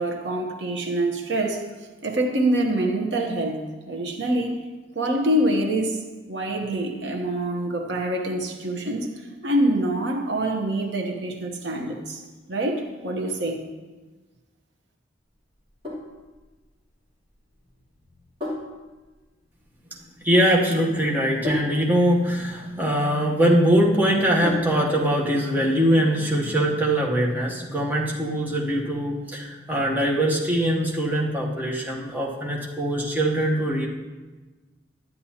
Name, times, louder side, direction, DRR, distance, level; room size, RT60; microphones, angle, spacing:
voice 1, 0.0-1.6 2.0-4.6 4.9-6.0 6.3-9.1 9.4-13.6, right 1 dB, 65° right, 2 dB, 1.0 m, -25 dB
Sink (filling or washing), 15.5-25.0, left 1 dB, 30° right, 2.9 m, -36 dB
voice 2, 20.2-33.9, equal, 10° right, -3 dB, 1.0 m, -22 dB
11.0 x 9.3 x 2.8 m, 1.2 s
head